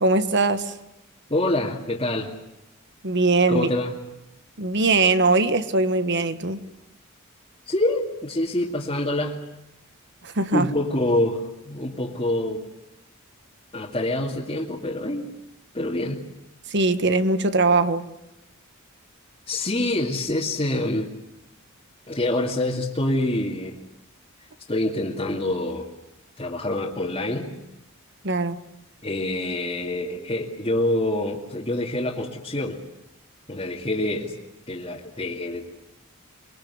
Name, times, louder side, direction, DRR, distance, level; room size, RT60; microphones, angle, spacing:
voice 1, 0.0-0.7 3.0-3.7 4.6-6.6 10.2-10.7 16.7-18.1 28.2-28.6, right 3 dB, 55° right, 12 dB, 1.6 m, -21 dB
voice 2, 1.3-2.3 3.5-3.9 7.7-9.4 10.5-12.7 13.7-15.3 15.7-16.2 19.5-21.1 22.1-23.8 24.7-25.9 26.4-27.5 29.0-32.8 33.5-34.3 34.7-35.6, left 1 dB, 25° left, -4 dB, 2.4 m, -26 dB
24.5 x 23.0 x 9.6 m, 0.90 s
head